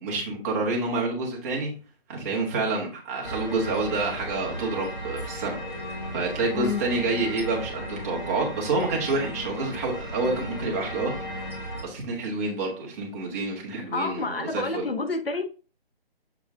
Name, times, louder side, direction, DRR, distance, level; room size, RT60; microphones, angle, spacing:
voice 1, 0.0-1.7 2.1-5.6 5.9-11.5 11.8-14.9, right 3 dB, 15° right, 1.4 m, -28 dB
sound 1, 3.2-11.8, equal, 25° left, 1.9 m, -36 dB
voice 2, 13.9-15.4, left 4 dB, 65° left, 1.4 m, -29 dB
7.1 x 4.3 x 3.6 m
hypercardioid pair, 165°, 31 cm